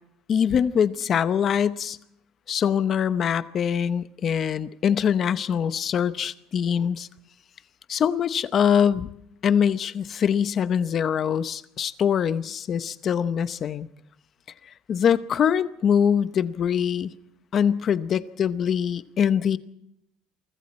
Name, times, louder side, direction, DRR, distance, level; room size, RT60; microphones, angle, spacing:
voice 1, 0.3-2.0 2.5-7.1 7.9-9.1 9.4-13.9 14.9-17.1 17.5-19.6, left 8 dB, 30° left, 13 dB, 0.8 m, -23 dB
29.0 x 24.0 x 4.3 m, 0.81 s
cardioid pair, 175°, 0 cm